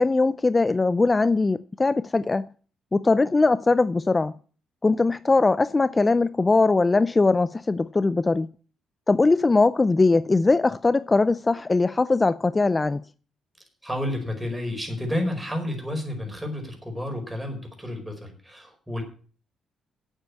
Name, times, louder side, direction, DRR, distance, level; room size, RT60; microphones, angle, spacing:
voice 1, 0.0-2.4 2.9-4.3 4.8-8.5 9.1-13.0, left 3 dB, 25° left, 0.4 m, -21 dB
voice 2, 13.8-19.0, left 1 dB, 5° right, 4.8 m, -30 dB
8.5 x 8.2 x 8.3 m
cardioid pair, 90°, 0 cm